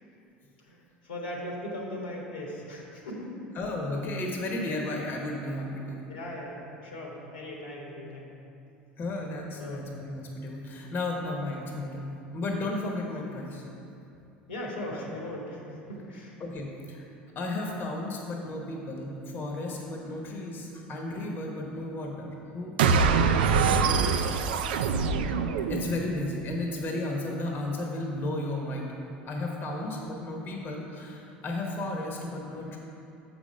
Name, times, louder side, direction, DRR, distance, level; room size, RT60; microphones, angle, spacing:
voice 1, 1.0-3.3 6.1-8.3 9.6-9.9 14.5-15.6 15.9-16.3, left 1 dB, 85° left, -2 dB, 1.4 m, -38 dB
voice 2, 3.5-6.0 9.0-13.6 16.4-17.0 17.3-23.5 25.7-28.9 29.2-32.8, left 2 dB, 40° left, 0 dB, 1.0 m, -34 dB
sound 1, 22.8-26.2, right 5 dB, 75° right, 0.4 m, -24 dB
6.8 x 5.2 x 5.3 m, 2.8 s
hypercardioid pair, 75°, 5 cm